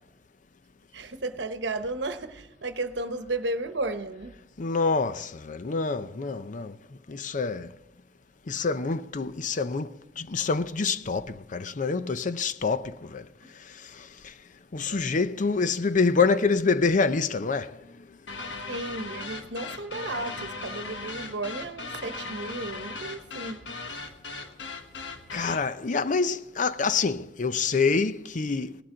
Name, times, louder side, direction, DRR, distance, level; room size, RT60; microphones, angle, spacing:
voice 1, 0.9-4.4 14.9-15.0 18.7-23.7, right 2 dB, 75° right, 1.0 m, -34 dB
voice 2, 4.6-6.8 7.1-7.7 8.5-13.3 13.8-14.3 14.7-17.8 25.3-28.8, left 4 dB, 45° left, 0.6 m, -26 dB
sound 1, 18.3-25.7, left 3 dB, 85° left, 1.3 m, -38 dB
18.0 x 13.0 x 3.8 m
head